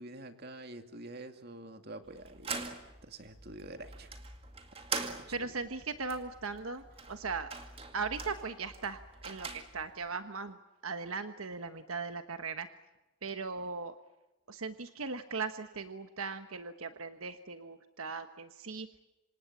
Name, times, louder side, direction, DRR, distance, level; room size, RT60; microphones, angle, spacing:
voice 1, 0.0-4.1 4.9-5.5, right 2 dB, 45° right, 7 dB, 2.4 m, -47 dB
sound 1, 2.0-10.1, right 4 dB, 25° right, 2.3 m, -43 dB
voice 2, 5.3-7.5 7.9-9.0 9.2-10.6 10.8-12.7 13.2-13.9 14.5-18.9, right 4 dB, 80° right, 8 dB, 1.2 m, -38 dB
27.5 x 26.0 x 7.3 m, 1.1 s
head